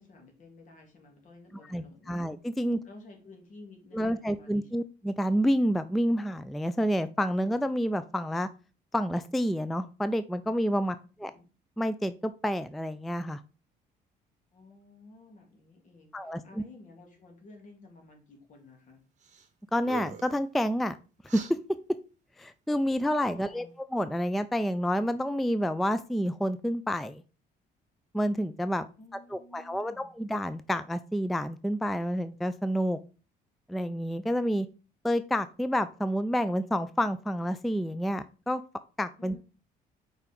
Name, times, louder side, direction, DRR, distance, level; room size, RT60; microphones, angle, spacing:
voice 1, 0.0-2.2 2.8-4.7 11.3-11.5 14.5-19.0 23.3-23.7 29.0-30.1 39.2-39.4, left 2 dB, 50° left, 2 dB, 2.4 m, -52 dB
voice 2, 1.7-2.8 3.9-8.5 8.9-11.3 11.8-13.4 16.1-16.6 19.7-21.0 21.3-21.6 22.4-23.7 23.9-27.2 28.1-28.9 29.3-33.0 33.7-34.7 35.0-38.6 39.0-39.4, equal, ahead, 12 dB, 0.3 m, -29 dB
sound 1, 19.2-19.5 19.8-20.4 21.3-21.5, right 7 dB, 45° right, 1.4 m, -42 dB
4.8 x 4.7 x 5.1 m, 0.35 s
cardioid pair, 110°, 17 cm